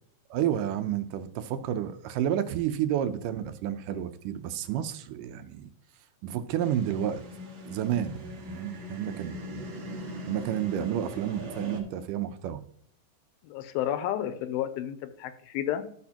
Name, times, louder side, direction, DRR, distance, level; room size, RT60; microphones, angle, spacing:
voice 1, 0.3-5.7 6.2-7.2 7.7-9.7 10.3-12.6, right 10 dB, 80° right, 10 dB, 2.0 m, -30 dB
sound 1, 6.6-11.8, left 1 dB, 65° right, 1.3 m, -40 dB
voice 2, 13.4-15.8, left 11 dB, 80° left, 11 dB, 2.4 m, -31 dB
13.5 x 6.4 x 2.9 m, 0.64 s
omnidirectional pair, 4.3 m